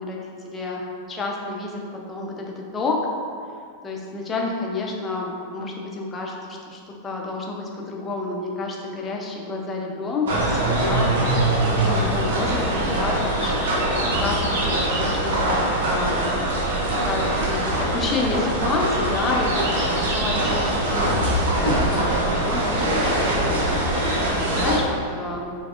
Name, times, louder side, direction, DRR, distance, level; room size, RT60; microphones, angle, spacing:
voice 1, 0.0-3.1 3.8-16.4 17.0-25.5, left 3 dB, 20° left, -1 dB, 0.5 m, -30 dB
sound 1, 10.3-24.8, right 1 dB, 60° right, 0.6 m, -22 dB
5.7 x 2.0 x 2.4 m, 2.2 s
figure-of-eight pair, 90°, 0 cm